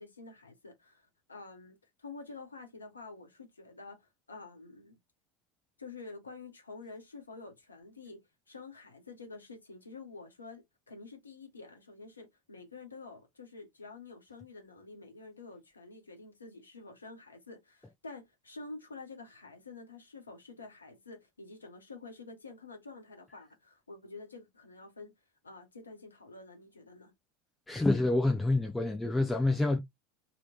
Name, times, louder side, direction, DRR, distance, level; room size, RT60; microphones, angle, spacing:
voice 1, 0.0-5.0 5.8-8.2 8.5-25.1 25.4-27.1, left 3 dB, 85° left, 1.0 m, -49 dB
voice 2, 27.7-29.8, left 2 dB, 10° left, 0.6 m, -27 dB
3.0 x 3.0 x 2.6 m
figure-of-eight pair, 80°, 0 cm